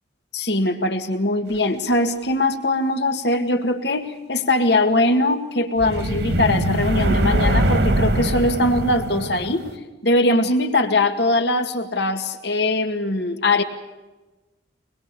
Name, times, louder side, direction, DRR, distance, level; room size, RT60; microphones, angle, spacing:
voice 1, 0.3-9.7 10.0-13.6, left 2 dB, 65° left, 6 dB, 2.1 m, -21 dB
sound 1, 5.8-9.8, right 1 dB, 65° right, 2.6 m, -22 dB
24.0 x 21.0 x 6.9 m, 1.2 s
head